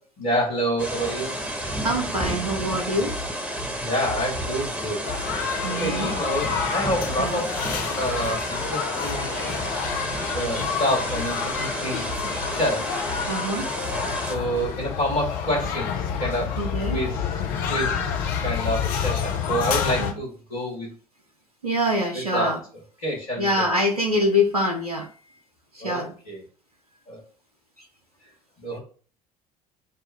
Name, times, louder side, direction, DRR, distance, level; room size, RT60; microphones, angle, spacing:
voice 1, 0.2-1.3 3.8-5.0 5.8-7.5 7.9-9.3 10.3-12.9 14.3-15.9 16.2-16.6 16.9-17.2 17.7-20.9 22.3-22.5 23.0-23.8 25.8-26.4 27.1-27.2 28.6-28.8, equal, 70° left, -3 dB, 1.7 m, -28 dB
sound 1, 0.8-14.3, equal, 5° right, 1.3 m, -31 dB
voice 2, 1.8-3.2 5.6-6.1 7.2-7.4 13.3-13.7 16.6-17.0 20.0-20.1 21.6-22.6 23.4-25.1 25.7-26.1, left 1 dB, 90° right, 1 dB, 0.7 m, -24 dB
sound 2, 2.8-19.1, left 1 dB, 50° right, 2.0 m, -39 dB
sound 3, 5.1-20.1, left 7 dB, 50° left, 0.6 m, -29 dB
6.5 x 2.3 x 3.5 m, 0.41 s
figure-of-eight pair, 60°, 19 cm